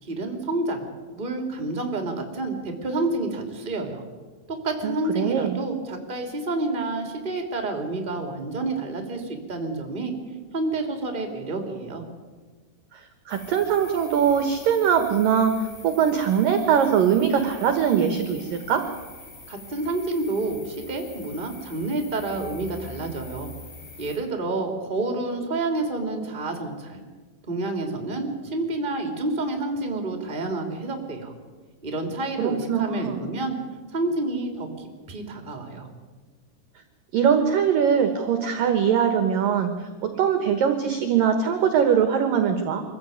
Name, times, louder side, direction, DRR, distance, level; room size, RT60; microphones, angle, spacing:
voice 1, 0.0-4.0 4.5-10.1 10.5-12.0 19.5-23.5 24.0-27.0 27.5-31.3 31.8-33.6 33.9-35.9, right 2 dB, 15° right, 4 dB, 2.3 m, -29 dB
voice 2, 4.8-5.6 12.9-13.0 13.3-18.8 32.4-33.2 37.1-42.8, right 7 dB, 65° right, 7 dB, 2.3 m, -22 dB
sound 1, 13.3-24.2, left 3 dB, 75° left, 8.5 m, -44 dB
25.0 x 15.0 x 9.5 m, 1.4 s
omnidirectional pair, 5.6 m